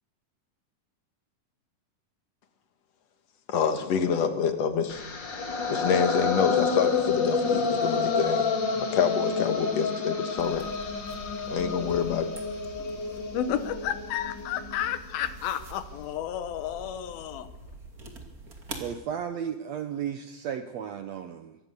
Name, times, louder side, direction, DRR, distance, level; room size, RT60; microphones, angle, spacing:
voice 1, 3.5-5.1 5.7-8.5 8.8-10.6 11.5-12.3, left 6 dB, 55° left, 7 dB, 2.2 m, -27 dB
sound 1, 4.9-15.0, left 5 dB, 35° left, 2.4 m, -29 dB
sound 2, 10.4-18.9, right 2 dB, 25° right, 2.5 m, -45 dB
voice 2, 13.3-17.5, left 10 dB, 80° left, 11 dB, 3.0 m, -31 dB
voice 3, 18.8-21.6, right 8 dB, 80° right, 8 dB, 1.5 m, -34 dB
23.5 x 17.5 x 6.7 m, 0.94 s
omnidirectional pair, 4.3 m